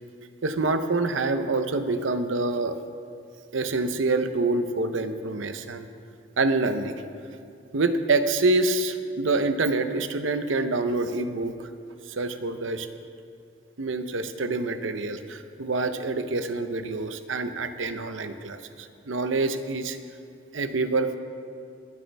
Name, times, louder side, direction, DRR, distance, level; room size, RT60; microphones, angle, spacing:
voice 1, 0.4-2.8 3.5-5.9 6.4-6.9 7.7-11.7 12.1-12.9 13.8-20.0 20.5-21.2, right 3 dB, 90° right, 9 dB, 0.7 m, -26 dB
23.0 x 8.2 x 3.4 m, 2.4 s
head